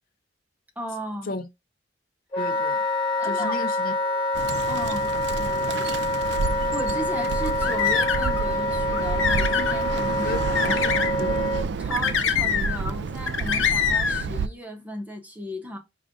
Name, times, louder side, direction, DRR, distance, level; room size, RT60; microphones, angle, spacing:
voice 1, 0.8-1.3 3.2-3.6 4.7-5.9 6.7-10.4 11.8-15.8, equal, 10° right, 0.8 m, -35 dB
Wind instrument woodwind instrument, 2.3-11.7, left 1 dB, 25° left, 1.3 m, -26 dB
voice 2, 2.4-2.8 3.2-3.9 10.2-11.6, left 3 dB, 45° left, 0.5 m, -34 dB
Bird, 4.3-14.5, right 5 dB, 60° right, 0.3 m, -30 dB
sound 1, 7.4-8.4 8.9-9.8 10.6-11.1 11.9-12.9 13.3-14.2, left 7 dB, 85° left, 0.7 m, -24 dB
5.0 x 2.4 x 3.6 m
head